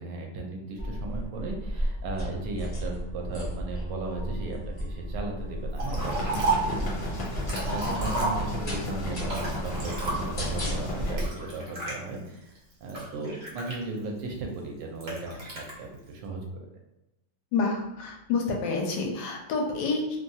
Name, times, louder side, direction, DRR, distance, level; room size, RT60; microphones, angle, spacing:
voice 1, 0.0-12.5 12.8-16.4, right 3 dB, 75° right, 1 dB, 1.2 m, -36 dB
sound 1, 0.8-11.3, equal, 35° left, 0.6 m, -34 dB
Liquid, 5.8-6.8 7.3-8.8 9.2-10.5 11.2-12.0 12.6-14.2 15.0-15.7, right 3 dB, 50° right, 0.8 m, -32 dB
sound 2, 5.9-11.1, left 1 dB, 65° left, 1.3 m, -34 dB
voice 2, 17.5-20.2, left 4 dB, 85° left, 0 dB, 1.3 m, -28 dB
3.1 x 2.3 x 2.6 m, 0.94 s
omnidirectional pair, 2.0 m